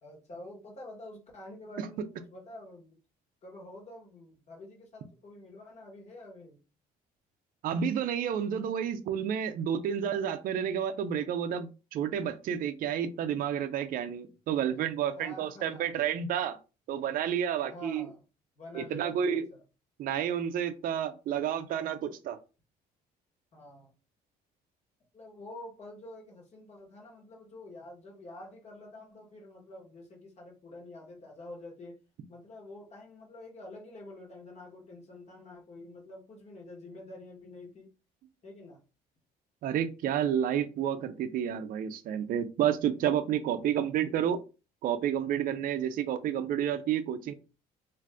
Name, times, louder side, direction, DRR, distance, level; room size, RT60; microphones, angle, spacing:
voice 1, 0.0-3.0 3.4-6.6 14.5-14.8 15.2-16.0 17.6-18.2 18.6-19.6 23.5-23.9 25.1-32.0 32.3-37.9 38.4-38.8, left 1 dB, 40° left, 1.2 m, -48 dB
voice 2, 7.6-16.6 16.9-18.1 18.7-19.4 20.0-22.4 39.6-44.4 44.8-47.3, right 9 dB, 55° right, 0.4 m, -30 dB
2.6 x 2.4 x 3.3 m
cardioid pair, 110°, 17 cm